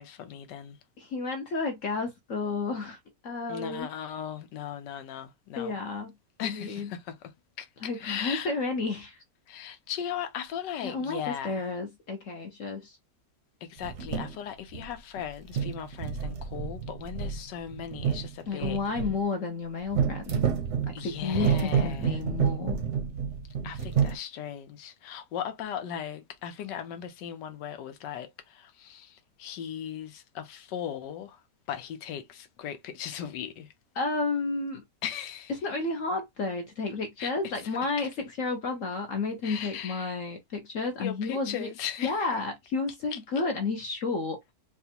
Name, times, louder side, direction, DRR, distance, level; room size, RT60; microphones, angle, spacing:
voice 1, 0.0-0.8 3.5-5.7 6.4-7.3 7.6-8.5 9.5-11.7 13.6-18.8 20.9-22.2 23.6-31.4 31.7-33.7 35.0-35.5 37.2-38.1 39.4-40.2 41.0-42.3 43.1-43.2, left 9 dB, 90° left, 1.3 m, -38 dB
voice 2, 1.0-3.0 3.2-3.9 5.5-6.1 6.4-6.9 7.8-9.2 10.8-13.0 18.5-20.5 20.9-22.8 34.0-34.8 35.6-38.1 38.4-41.7 42.0-44.4, left 3 dB, 60° left, 0.9 m, -31 dB
sound 1, 13.8-14.4 14.7-15.2 15.5-19.2 19.9-24.2, right 7 dB, 55° right, 0.8 m, -29 dB
4.1 x 2.3 x 2.8 m
omnidirectional pair, 1.8 m